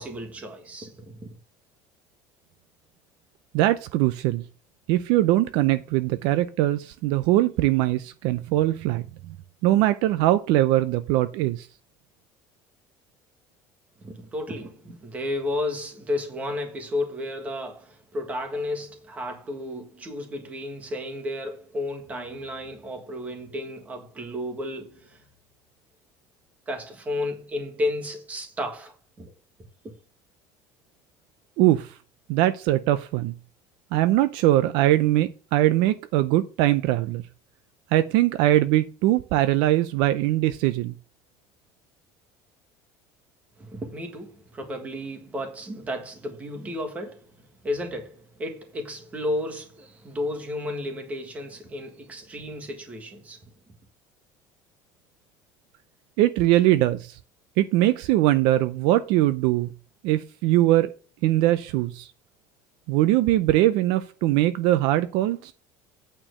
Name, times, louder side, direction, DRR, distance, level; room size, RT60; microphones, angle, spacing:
voice 1, 0.0-1.4 14.0-25.2 26.7-29.3 43.6-53.4, left 1 dB, 15° right, 1.7 m, -33 dB
voice 2, 3.5-4.4 4.9-9.4 9.6-11.7 31.6-31.9 32.3-33.3 33.9-37.2 37.9-40.9 56.2-57.2 57.6-59.7 60.0-60.9 61.2-62.1 62.9-65.5, right 15 dB, 65° right, 0.5 m, -21 dB
8.9 x 4.6 x 6.4 m
cardioid pair, 170°, 9 cm